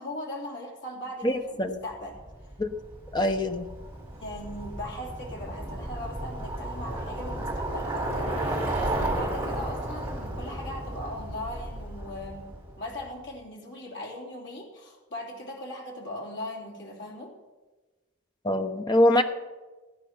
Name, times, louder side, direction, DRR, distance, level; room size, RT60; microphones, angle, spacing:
voice 1, 0.0-2.2 4.1-8.4 8.8-12.5 12.8-17.3, left 1 dB, 55° left, -1 dB, 3.1 m, -39 dB
voice 2, 1.2-1.8 2.6-2.7 3.1-3.7 18.4-19.2, left 1 dB, 20° left, 6 dB, 0.9 m, -23 dB
Bicycle, 2.1-13.0, right 1 dB, 10° right, 3.6 m, -33 dB
17.0 x 9.9 x 5.9 m, 1.2 s
head